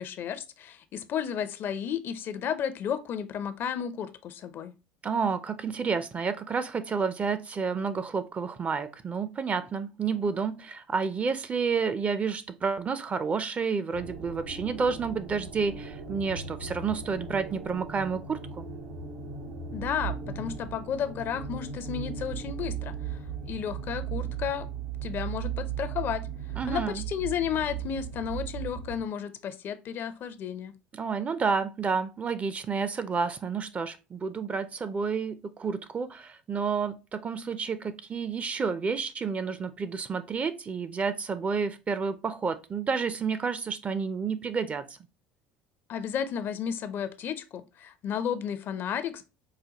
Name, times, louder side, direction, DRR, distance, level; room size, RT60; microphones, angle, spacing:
voice 1, 0.0-4.7 19.7-23.2 23.5-24.7 25.0-26.3 26.7-30.7 45.9-49.2, left 8 dB, 50° left, 0.5 m, -33 dB
voice 2, 5.0-18.7 26.6-27.0 30.9-44.8, right 5 dB, 30° right, 0.5 m, -30 dB
sound 1, 13.9-29.0, right 7 dB, 80° right, 1.0 m, -37 dB
4.9 x 2.2 x 2.8 m
hypercardioid pair, 70°, 4 cm